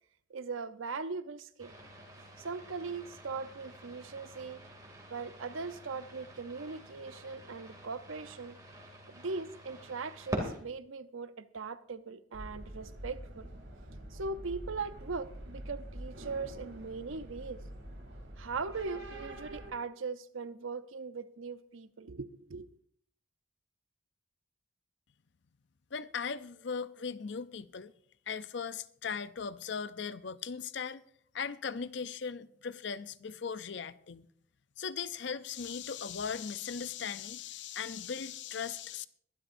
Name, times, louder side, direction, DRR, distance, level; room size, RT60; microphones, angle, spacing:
voice 1, 0.3-1.7 2.4-4.6 5.1-8.6 9.1-13.5 14.1-17.6 18.4-22.7, right 4 dB, 85° right, 0.7 m, -40 dB
sound 1, 1.6-10.6, equal, 20° right, 2.6 m, -45 dB
sound 2, 12.3-19.7, right 1 dB, 70° right, 3.0 m, -46 dB
voice 2, 25.9-27.9 28.3-31.0 31.3-34.3 34.8-39.1, left 6 dB, 60° left, 0.5 m, -38 dB
22.5 x 12.0 x 2.6 m
head